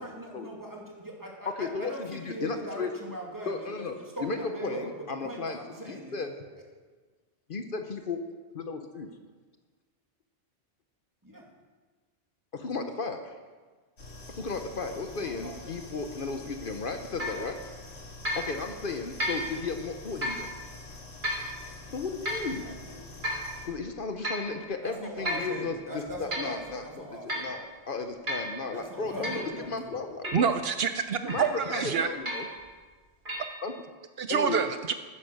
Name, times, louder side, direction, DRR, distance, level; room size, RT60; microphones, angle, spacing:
voice 1, 0.0-4.9 5.2-6.2 11.2-11.4 14.4-14.5 14.9-15.5 22.6-23.3 24.8-27.6 28.7-29.9, right 1 dB, 20° right, -2 dB, 2.3 m, -40 dB
voice 2, 1.6-2.9 3.5-6.3 7.5-8.2 8.5-9.1 12.5-13.3 14.3-17.6 18.3-20.5 21.9-22.6 23.6-30.5 31.2-32.5 33.6-33.7 34.3-34.6, left 4 dB, 55° left, 6 dB, 1.0 m, -35 dB
sound 1, 14.0-23.7, left 2 dB, 75° left, 2.6 m, -46 dB
sound 2, 17.2-17.4 18.2-18.5 19.2-19.5 20.2-20.5 21.2-21.5 22.2-22.5 23.2-23.5 24.2-24.5 25.2-25.5 26.1-26.6 27.3-27.5 28.3-28.5 29.2-29.5 30.2-30.5 31.3-31.6 32.2-32.6 33.2-33.5, equal, 50° right, 2.4 m, -32 dB
voice 3, 30.3-32.1 34.2-34.9, right 6 dB, 70° right, 9 dB, 0.8 m, -27 dB
11.0 x 10.0 x 6.5 m, 1.4 s
omnidirectional pair, 1.1 m